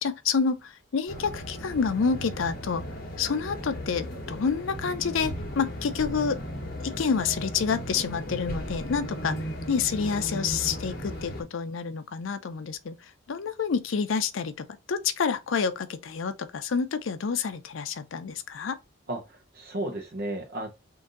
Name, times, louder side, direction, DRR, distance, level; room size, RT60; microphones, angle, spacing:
voice 1, 0.0-2.9 3.2-6.4 6.8-9.4 9.7-18.8, left 5 dB, 75° left, 0.5 m, -28 dB
sound 1, 1.1-11.4, equal, 45° left, 1.1 m, -36 dB
voice 2, 19.1-20.7, right 1 dB, 50° right, 0.7 m, -34 dB
3.8 x 2.6 x 3.8 m
head